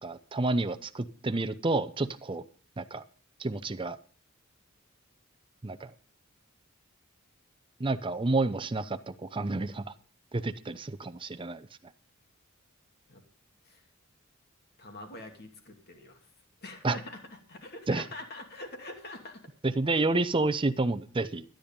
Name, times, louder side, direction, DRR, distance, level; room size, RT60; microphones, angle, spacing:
voice 1, 0.0-2.4 2.8-3.0 3.4-4.0 5.6-5.9 7.8-9.9 10.3-11.7 16.8-17.0 17.9-18.0 19.6-21.4, right 2 dB, 25° right, 11 dB, 0.6 m, -29 dB
voice 2, 14.8-16.3 16.6-17.2 17.5-19.4, left 2 dB, 50° left, 4 dB, 2.6 m, -44 dB
12.5 x 10.5 x 5.3 m, 0.42 s
head